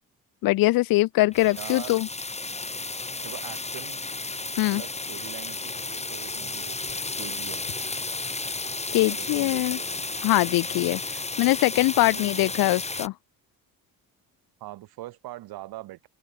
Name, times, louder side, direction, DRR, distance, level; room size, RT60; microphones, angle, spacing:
voice 1, 0.4-2.1 4.6-4.8 8.9-9.8 10.2-13.1, left 18 dB, 70° left, 0.5 m, -22 dB
sound 1, 1.3-13.1, left 3 dB, 20° left, 3.8 m, -33 dB
voice 2, 1.4-2.0 3.2-4.0 4.7-7.7 9.1-10.0 12.1-12.6 14.6-16.1, right 16 dB, 90° right, 5.7 m, -42 dB
cardioid pair, 110°, 36 cm